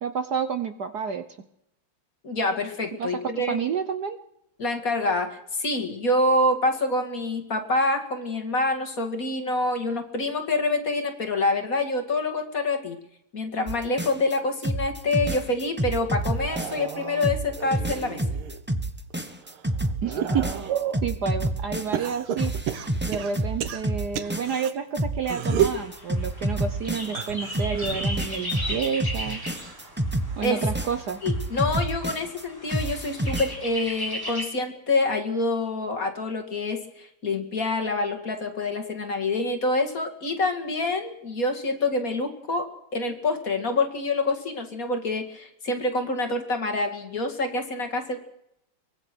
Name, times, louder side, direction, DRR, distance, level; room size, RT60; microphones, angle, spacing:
voice 1, 0.0-1.2 3.0-3.1 3.5-4.2 20.0-20.7 21.0-22.5 23.0-29.4 30.4-31.2, right 6 dB, 55° right, 9 dB, 1.3 m, -29 dB
voice 2, 2.2-3.6 4.6-13.0 13.3-18.2 30.4-30.6 31.2-48.2, left 2 dB, 40° left, 5 dB, 2.5 m, -26 dB
sound 1, 13.7-14.4 14.6-16.9 17.2-22.1 22.4-24.7 25.0-27.3 27.5-32.4 32.7-33.5, right 1 dB, 10° right, 0.6 m, -28 dB
sound 2, 16.3-18.6 19.1-21.1 21.9-24.7 25.2-25.8 27.0-29.9 30.3-30.7 31.9-32.0, right 10 dB, 80° right, 2.0 m, -32 dB
sound 3, 25.8-34.5, left 1 dB, 10° left, 3.6 m, -37 dB
23.5 x 20.0 x 6.2 m, 0.79 s
omnidirectional pair, 2.4 m